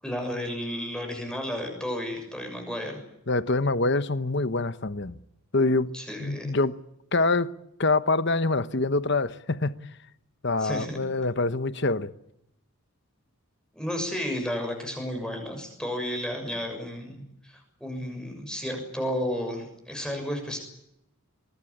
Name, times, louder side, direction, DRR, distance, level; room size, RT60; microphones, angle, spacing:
voice 1, 0.0-3.0 5.9-6.5 10.6-11.0 13.7-20.6, equal, 5° left, 6.7 m, -32 dB
voice 2, 3.3-5.2 5.5-5.9 6.2-6.7 7.1-7.5 7.8-9.7 10.4-12.1, left 3 dB, 50° left, 1.0 m, -25 dB
24.0 x 20.5 x 10.0 m
head